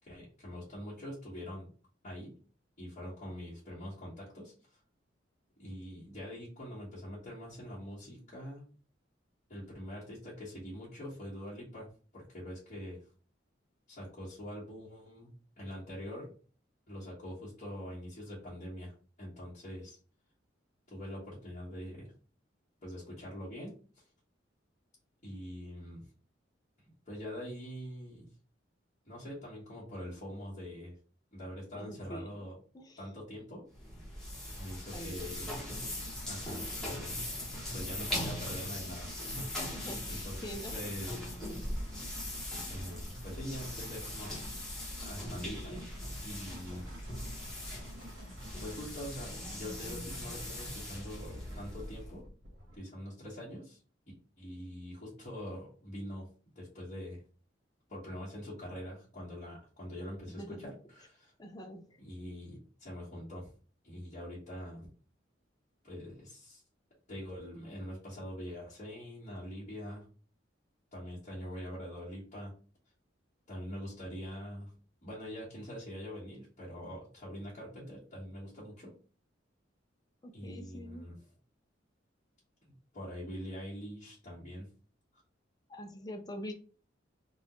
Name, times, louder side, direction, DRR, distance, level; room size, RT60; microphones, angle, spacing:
voice 1, 0.0-1.7 2.0-2.4 2.8-4.5 5.6-8.6 9.5-13.0 13.9-16.3 16.9-20.0 20.9-22.1 22.8-23.8 25.2-26.0 27.1-28.3 29.0-30.9 31.3-32.5 33.0-33.6 34.6-35.5 36.3-37.2 37.7-41.2 42.7-44.4 45.0-45.8 46.2-46.8 48.6-52.2 52.8-53.8 54.4-56.3 56.5-57.2 57.9-61.3 62.0-63.5 63.8-64.9 65.8-66.6 67.1-70.0 70.9-72.5 73.5-74.7 75.0-78.9 80.3-81.1 82.9-84.7, equal, 40° left, 1.6 m, -44 dB
voice 2, 31.7-32.3 32.7-33.0 34.9-35.3 39.7-40.9 60.4-60.7 61.4-62.0 80.2-81.1 85.7-86.5, equal, 20° left, 0.6 m, -44 dB
sound 1, 33.7-52.2, left 1 dB, 5° left, 1.3 m, -40 dB
sound 2, 35.2-52.8, equal, 80° right, 1.5 m, -53 dB
3.8 x 2.5 x 3.1 m
head